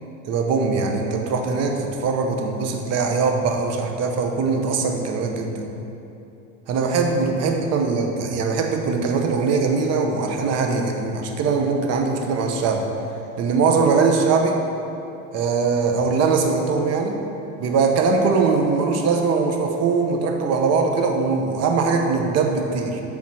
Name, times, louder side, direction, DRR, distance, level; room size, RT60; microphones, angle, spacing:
voice 1, 0.2-5.6 6.7-12.8 13.4-14.6 15.3-17.2 17.6-23.0, right 4 dB, 50° right, 3 dB, 1.0 m, -21 dB
7.3 x 3.8 x 6.2 m, 2.8 s
supercardioid pair, 110°, 34 cm